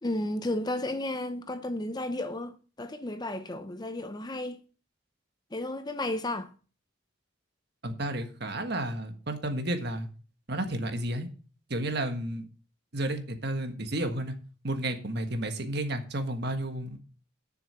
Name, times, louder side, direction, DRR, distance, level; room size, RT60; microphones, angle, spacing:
voice 1, 0.0-4.6 5.5-6.5, left 1 dB, 20° left, 0.6 m, -33 dB
voice 2, 7.8-10.1 10.5-11.3 11.7-12.4 12.9-14.3 14.6-17.0, right 1 dB, 50° right, 1.5 m, -32 dB
10.5 x 6.8 x 5.6 m
head